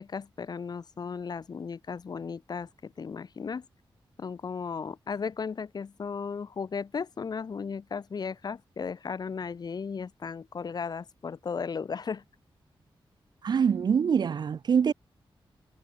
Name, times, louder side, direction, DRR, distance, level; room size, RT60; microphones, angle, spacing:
voice 1, 0.0-3.6 4.2-12.2, left 5 dB, 45° left, 0.9 m, -35 dB
voice 2, 13.4-14.9, right 7 dB, 50° right, 0.4 m, -24 dB
wide cardioid pair, 160°, 9 cm